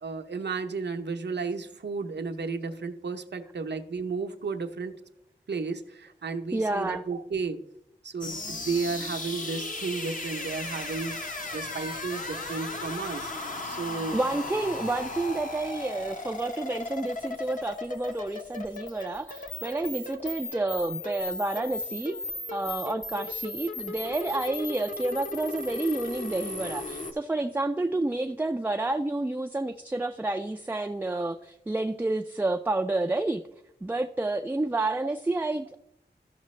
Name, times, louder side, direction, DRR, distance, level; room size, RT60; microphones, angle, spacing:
voice 1, 0.0-5.0 5.5-7.6 8.0-11.2 11.5-13.3 13.6-14.2, right 4 dB, 80° right, 0.7 m, -33 dB
voice 2, 6.5-7.0 13.9-22.2 22.5-33.4 33.8-35.8, right 2 dB, 10° right, 0.4 m, -29 dB
sound 1, 8.2-27.1, left 2 dB, 50° left, 1.0 m, -36 dB
14.0 x 5.8 x 3.2 m
wide cardioid pair, 80°, 18 cm